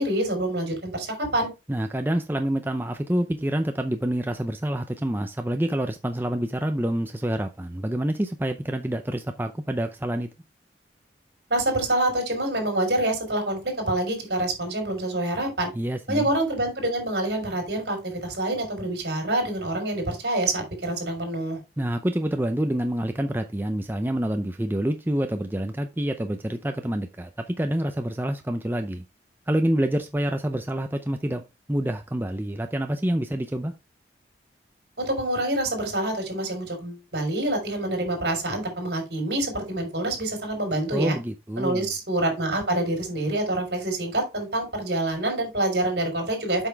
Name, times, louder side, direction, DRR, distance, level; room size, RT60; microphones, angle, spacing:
voice 1, 0.0-1.5 11.5-15.7 16.1-21.6 35.0-41.2 41.6-46.7, right 1 dB, 65° right, 4.5 m, -26 dB
voice 2, 1.7-10.3 15.7-16.3 21.8-29.0 29.5-31.4 31.7-33.7 40.9-41.9, right 1 dB, 10° right, 0.5 m, -27 dB
7.9 x 5.9 x 3.4 m
head